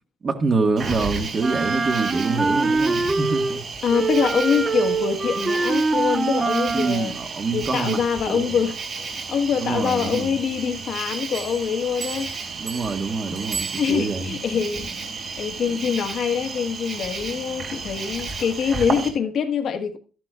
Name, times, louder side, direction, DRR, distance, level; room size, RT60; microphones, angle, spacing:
voice 1, 0.2-3.6 6.7-8.6 9.6-10.4 12.4-14.4, right 4 dB, 45° right, 1.7 m, -26 dB
Cricket, 0.8-19.1, right 4 dB, 60° right, 3.9 m, -33 dB
Wind instrument woodwind instrument, 1.4-3.6 3.9-7.0, right 3 dB, 25° right, 0.6 m, -23 dB
voice 2, 3.8-7.2 7.5-12.3 13.8-14.9 15.2-20.0, left 7 dB, 65° left, 1.4 m, -24 dB
Bell, 11.3-14.4, right 6 dB, 75° right, 2.9 m, -37 dB
13.0 x 11.5 x 2.5 m
cardioid pair, 90°, 0 cm